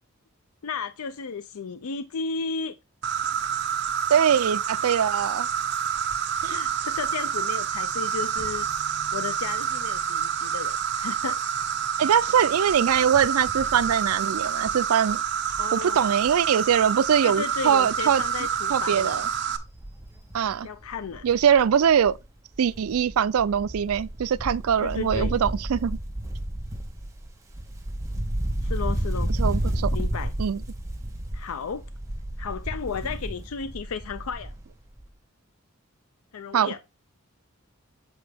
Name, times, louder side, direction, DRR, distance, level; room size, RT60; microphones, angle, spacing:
voice 1, 0.6-2.8 6.5-11.4 15.6-16.0 17.2-19.3 20.6-21.3 24.8-25.3 28.6-29.3 29.9-30.3 31.3-31.8 32.4-34.5 36.3-36.8, left 5 dB, 90° left, 0.5 m, -34 dB
Insect, 3.0-19.6, right 7 dB, 55° right, 0.8 m, -28 dB
voice 2, 4.1-5.5 6.4-6.6 12.0-15.2 15.7-18.2 18.7-19.3 20.3-20.7 21.2-22.2 22.6-26.0 29.4-30.0 30.4-30.6 36.5-36.7, right 8 dB, 90° right, 0.4 m, -22 dB
sound 1, 8.4-10.9, equal, 65° left, 2.8 m, -51 dB
Wind, 17.7-18.0 18.3-18.4 18.7-22.3 22.5-34.7 35.0-35.1, right 1 dB, 15° right, 1.4 m, -31 dB
8.0 x 5.1 x 3.4 m
head